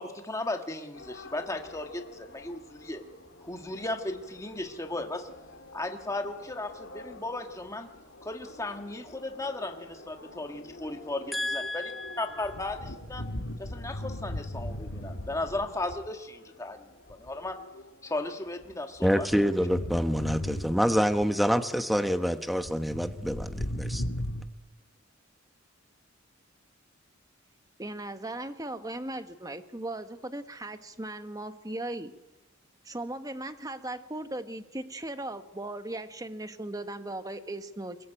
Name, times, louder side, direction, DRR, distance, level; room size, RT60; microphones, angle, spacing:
voice 1, 0.0-3.0 3.4-5.3 5.7-7.9 8.2-11.9 12.2-13.3 13.6-16.8 17.1-17.6 18.0-19.3, left 2 dB, 15° left, 4 dB, 1.7 m, -36 dB
sound 1, 0.9-18.9, left 2 dB, 65° left, 2.9 m, -50 dB
voice 2, 11.3-12.2 19.0-24.0, equal, ahead, 8 dB, 1.1 m, -27 dB
sound 2, 12.3-16.1 17.1-17.3 18.6-21.3 22.6-24.4, left 1 dB, 80° left, 2.1 m, -37 dB
voice 3, 27.8-32.1 32.8-38.0, right 1 dB, 20° right, 9 dB, 1.3 m, -37 dB
23.0 x 21.5 x 9.0 m, 1.1 s
head